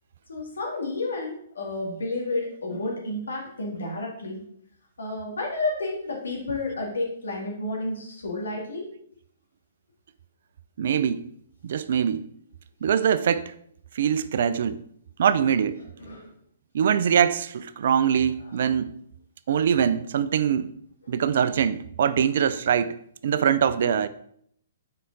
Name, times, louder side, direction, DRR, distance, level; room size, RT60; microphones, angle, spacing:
voice 1, 0.3-4.4 5.0-8.9 16.0-16.3 18.5-18.6, left 2 dB, 75° left, 2.1 m, -31 dB
voice 2, 10.8-11.3 11.6-12.3 12.8-13.5 13.9-14.8 15.2-15.8 16.7-19.0 19.5-20.7 21.1-24.1, right 8 dB, 60° right, 0.4 m, -23 dB
5.6 x 4.8 x 3.9 m
figure-of-eight pair, 125°, 0 cm